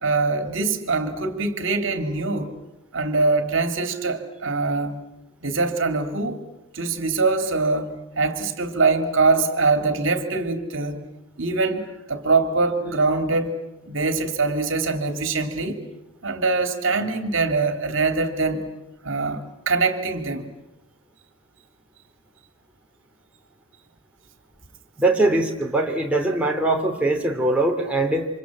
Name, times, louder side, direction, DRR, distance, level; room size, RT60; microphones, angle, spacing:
voice 1, 0.0-2.6 2.9-5.0 5.4-6.4 6.7-11.1 11.4-13.6 13.9-15.8 16.2-18.7 19.0-20.5, right 3 dB, 60° right, 7 dB, 2.7 m, -23 dB
voice 2, 25.0-28.3, right 2 dB, 5° right, -1 dB, 3.2 m, -21 dB
30.0 x 26.5 x 7.6 m, 0.96 s
head